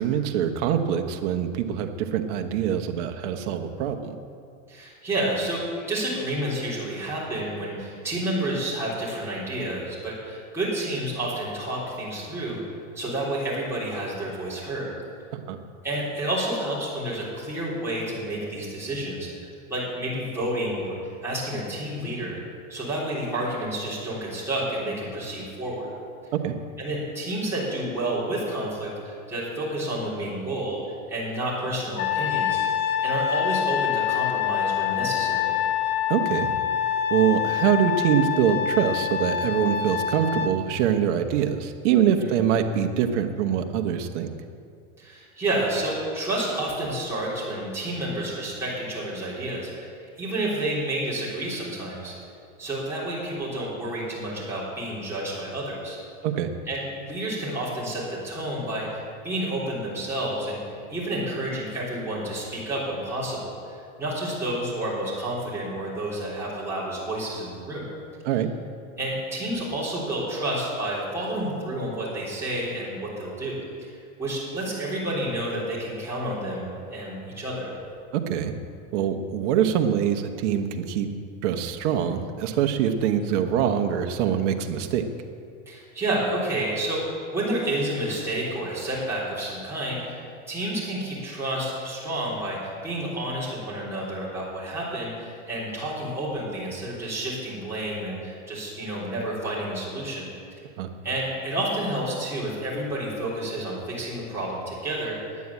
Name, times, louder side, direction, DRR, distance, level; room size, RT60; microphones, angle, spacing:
voice 1, 0.0-4.1 15.3-15.6 26.3-26.5 36.1-36.5 37.1-44.3 56.2-56.5 68.2-68.5 78.1-78.5 78.9-81.1 81.4-85.0 100.8-100.9, right 9 dB, 55° right, 6 dB, 1.2 m, -24 dB
voice 2, 4.7-12.6 13.0-14.9 15.8-22.4 22.7-25.9 26.8-30.8 31.1-32.6 33.0-35.6 42.1-42.4 45.0-52.1 52.6-56.0 56.7-60.6 60.9-67.8 69.0-77.7 85.7-100.3 100.5-100.6 101.0-105.4, right 1 dB, 5° right, -9 dB, 3.7 m, -30 dB
Trumpet, 32.0-40.5, left 9 dB, 65° left, 1.2 m, -26 dB
9.5 x 9.4 x 8.4 m, 2.4 s
supercardioid pair, 150°, 42 cm